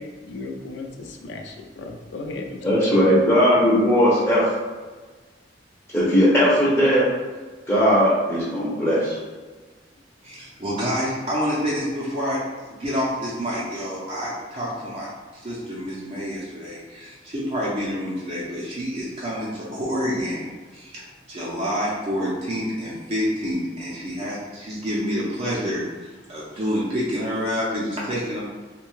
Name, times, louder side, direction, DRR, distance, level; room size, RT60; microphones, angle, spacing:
voice 1, 0.0-2.9, left 2 dB, 70° left, 3 dB, 0.4 m, -36 dB
voice 2, 2.6-4.5 5.9-7.1 7.7-9.2, equal, 10° left, -8 dB, 0.5 m, -18 dB
voice 3, 10.2-20.5 20.7-21.0 21.3-28.4, equal, 35° right, -7 dB, 0.5 m, -28 dB
2.7 x 2.2 x 3.0 m, 1.3 s
head